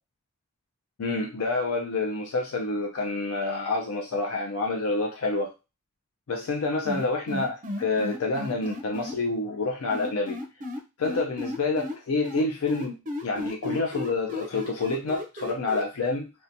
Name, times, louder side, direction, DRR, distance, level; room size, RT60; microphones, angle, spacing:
voice 1, 1.0-5.5 6.3-10.4 11.0-13.0 13.2-16.3, left 3 dB, 70° left, 1 dB, 0.4 m, -28 dB
sound 1, 6.8-9.1 9.9-11.9 12.2-15.8, left 2 dB, 35° right, 0.5 m, -34 dB
2.7 x 2.1 x 2.6 m, 0.28 s
head